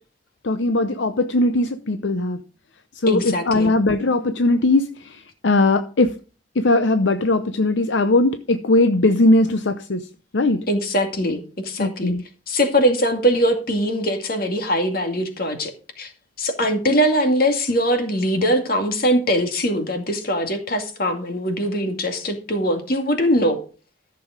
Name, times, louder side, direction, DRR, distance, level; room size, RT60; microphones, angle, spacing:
voice 1, 0.4-2.4 3.0-6.1 6.6-10.0 10.3-10.6 11.8-12.2, left 2 dB, 70° left, 0.8 m, -19 dB
voice 2, 3.1-3.7 10.7-12.1 12.5-15.7 16.0-16.1 16.4-23.6, equal, 50° left, 2.3 m, -21 dB
14.0 x 6.9 x 5.1 m
head